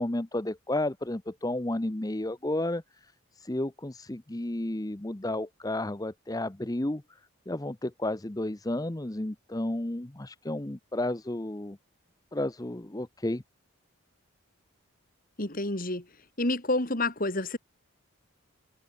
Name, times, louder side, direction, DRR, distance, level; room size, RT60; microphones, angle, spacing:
voice 1, 0.0-7.2 7.5-11.8 12.3-13.4, left 1 dB, 15° left, 0.7 m, -32 dB
voice 2, 15.4-16.1 16.4-17.6, left 2 dB, 40° left, 3.1 m, -28 dB
head